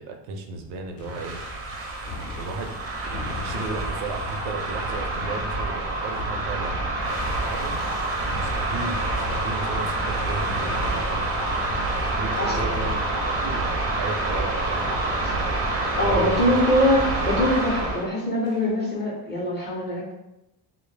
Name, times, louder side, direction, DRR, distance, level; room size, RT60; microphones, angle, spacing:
voice 1, 0.0-1.4 2.4-2.7 3.1-6.8 7.4-7.8 8.3-11.5 12.1-13.7 14.0-15.4 15.9-16.6, right 3 dB, 85° right, 4 dB, 0.6 m, -34 dB
sound 1, 0.6-17.1 17.5-17.8 18.5-19.0, left 3 dB, 70° left, 0.5 m, -39 dB
sound 2, 1.0-18.1, right 2 dB, 30° right, 0.4 m, -27 dB
voice 2, 16.0-20.1, left 1 dB, 25° left, -4 dB, 0.5 m, -23 dB
2.0 x 2.0 x 3.2 m, 0.92 s
cardioid pair, 150°, 46 cm